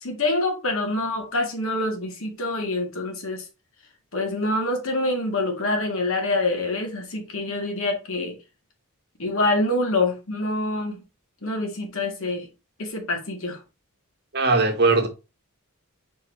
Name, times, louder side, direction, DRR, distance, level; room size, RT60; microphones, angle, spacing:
voice 1, 0.0-3.4 4.1-8.4 9.2-11.0 11.4-12.5 12.8-13.6, left 2 dB, 65° left, 2.0 m, -26 dB
voice 2, 14.3-15.1, right 3 dB, 50° right, 1.5 m, -19 dB
4.8 x 4.6 x 4.6 m
head